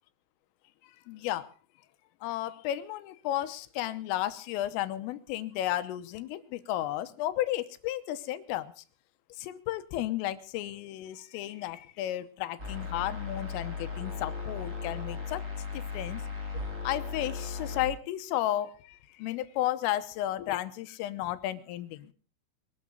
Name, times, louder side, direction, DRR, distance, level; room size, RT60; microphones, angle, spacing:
voice 1, 1.1-1.5 2.2-8.8 9.4-15.4 15.7-16.2 16.8-22.1, left 13 dB, 80° left, 11 dB, 3.5 m, -33 dB
sound 1, 12.6-17.9, left 5 dB, 15° right, 3.1 m, -37 dB
22.0 x 13.5 x 3.9 m, 0.37 s
omnidirectional pair, 6.0 m